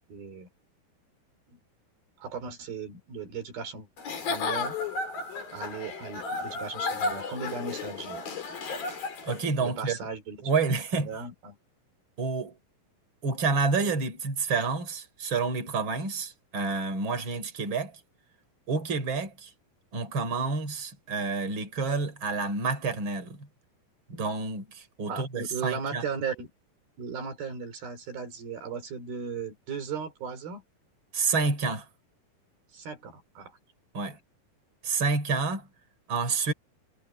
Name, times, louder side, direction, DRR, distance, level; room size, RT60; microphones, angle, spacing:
voice 1, 0.1-0.5 1.5-1.6 2.2-3.9 4.3-4.8 5.5-8.3 9.6-10.5 10.9-11.6 25.1-26.5 27.0-30.6 32.7-33.6 34.1-34.2, right 5 dB, 90° right, 6.4 m, -37 dB
Giggle / Chuckle chortle, 4.0-9.5, left 4 dB, 75° left, 6.3 m, -33 dB
voice 2, 9.2-10.0 10.4-11.1 12.2-12.6 13.2-18.0 18.7-19.5 19.9-23.5 24.1-26.0 31.1-31.9 33.9-34.2 34.8-35.7 36.1-36.5, right 4 dB, 35° right, 4.7 m, -29 dB
omnidirectional pair, 4.1 m